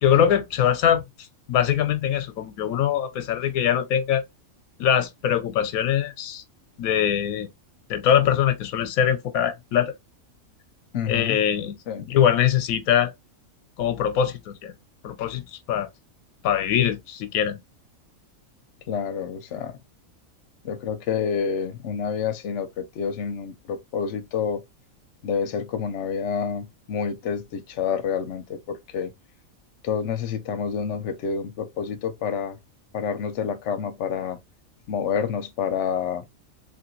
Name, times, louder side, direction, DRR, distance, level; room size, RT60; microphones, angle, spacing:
voice 1, 0.0-1.0 1.5-4.2 4.8-6.4 6.8-7.5 7.9-9.9 11.1-13.1 13.8-14.7 15.0-15.9 16.4-17.6, left 9 dB, 90° left, 1.1 m, -22 dB
voice 2, 10.9-11.4 11.9-12.1 18.9-19.7 20.6-24.6 25.2-29.1 29.8-32.6 32.9-34.4 34.9-36.2, left 7 dB, 65° left, 0.9 m, -28 dB
3.2 x 2.5 x 2.9 m
omnidirectional pair, 1.5 m